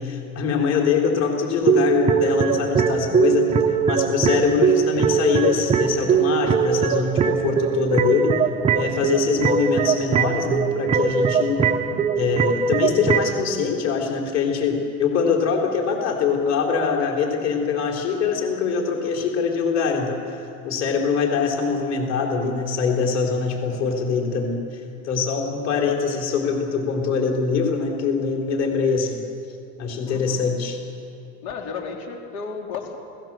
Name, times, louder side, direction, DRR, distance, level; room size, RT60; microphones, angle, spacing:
voice 1, 0.0-3.5 3.8-8.4 8.7-11.6 12.1-29.2 29.8-30.8, left 5 dB, 35° left, 1 dB, 4.1 m, -23 dB
sound 1, 1.6-13.4, right 7 dB, 15° right, 0.6 m, -21 dB
voice 2, 30.0-30.6 31.4-33.0, left 5 dB, 70° left, 1 dB, 3.9 m, -33 dB
29.5 x 18.5 x 7.6 m, 2.6 s
supercardioid pair, 150°, 43 cm